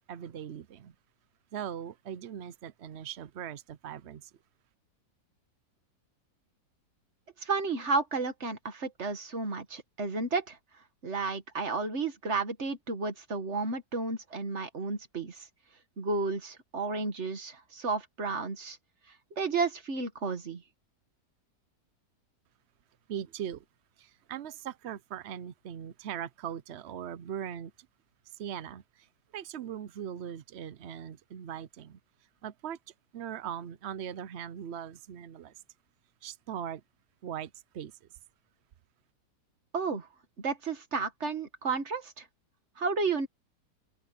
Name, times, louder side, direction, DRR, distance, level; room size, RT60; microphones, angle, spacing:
voice 1, 0.1-0.9 1.5-4.3 23.1-23.6 24.0-27.7 28.2-32.0 32.4-32.8 33.1-35.5 36.2-36.8 37.2-38.1, right 9 dB, 60° right, 0.7 m, -40 dB
voice 2, 7.4-10.6 11.0-15.5 16.0-18.8 19.3-20.6 39.7-40.1 40.4-42.3 42.8-43.3, right 4 dB, 45° right, 2.0 m, -32 dB
open air
omnidirectional pair, 1.8 m